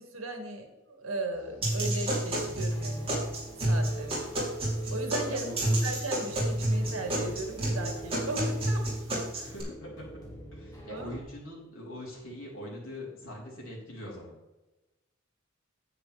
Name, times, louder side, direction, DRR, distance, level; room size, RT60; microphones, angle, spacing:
voice 1, 0.0-3.2 3.7-4.3 4.9-5.5 5.8-8.9 9.3-9.5 10.9-11.1, right 2 dB, 75° right, 4 dB, 1.9 m, -37 dB
sound 1, 1.3-11.2, right 2 dB, 20° left, 2.8 m, -46 dB
sound 2, 1.6-9.6, right 1 dB, 25° right, 3.3 m, -29 dB
voice 2, 5.3-5.8 9.4-10.1 10.5-14.4, left 1 dB, 75° left, -3 dB, 3.8 m, -42 dB
9.8 x 8.9 x 3.4 m, 1.1 s
head